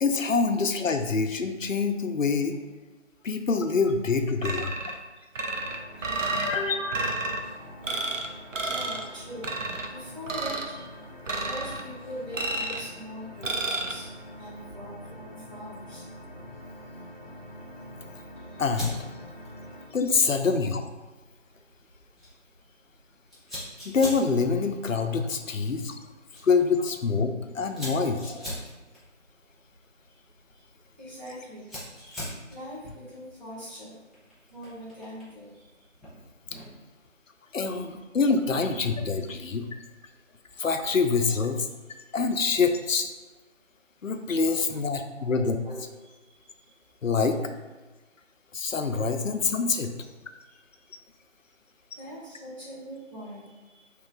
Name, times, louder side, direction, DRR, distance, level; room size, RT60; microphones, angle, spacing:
voice 1, 0.0-2.6 3.2-4.7 6.0-6.1 6.3-6.8 7.9-8.0 18.6-19.0 19.9-20.8 23.8-26.0 26.4-28.2 37.5-39.7 40.6-41.7 42.1-43.1 44.0-45.6 47.0-47.4 48.5-49.9, left 4 dB, 85° left, 7 dB, 0.6 m, -25 dB
sound 1, 4.4-5.0 5.4-6.6 6.9-7.4 7.8-8.3 8.5-9.1 9.4-9.9 10.3-10.7 11.3-11.8 12.3-12.9 13.4-13.9, right 2 dB, 75° right, 0.6 m, -30 dB
sound 2, 5.5-19.9, equal, 45° left, 0.6 m, -45 dB
voice 2, 5.9-7.1 7.4-11.0 11.4-14.1 14.4-16.1 16.8-17.0 19.6-19.7 22.6-22.7 28.2-28.5 30.1-30.2 30.5-30.7 31.0-34.0 34.5-35.9 37.6-37.9 38.5-38.6 42.0-42.2 45.1-45.3 45.6-45.7 46.0-46.8 50.4-50.9 52.0-53.9, equal, 35° right, -11 dB, 1.1 m, -43 dB
Fire, 18.7-36.9, equal, ahead, 0.7 m, -44 dB
3.1 x 3.0 x 3.7 m, 1.2 s
figure-of-eight pair, 175°, 38 cm